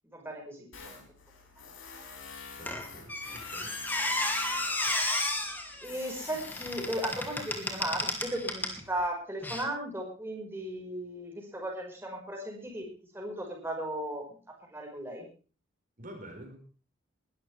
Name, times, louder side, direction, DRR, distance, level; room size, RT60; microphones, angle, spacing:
voice 1, 0.1-1.0 5.8-12.9 13.1-15.2, right 1 dB, 10° right, 0 dB, 5.4 m, -36 dB
Tools, 0.7-9.0, left 5 dB, 70° left, 6.6 m, -48 dB
voice 2, 2.6-3.7 4.8-5.0 16.0-16.6, right 1 dB, 40° right, 2 dB, 5.2 m, -49 dB
Squeak, 2.7-8.8 9.4-9.6, left 2 dB, 10° left, 2.7 m, -33 dB
21.5 x 13.0 x 3.5 m, 0.37 s
head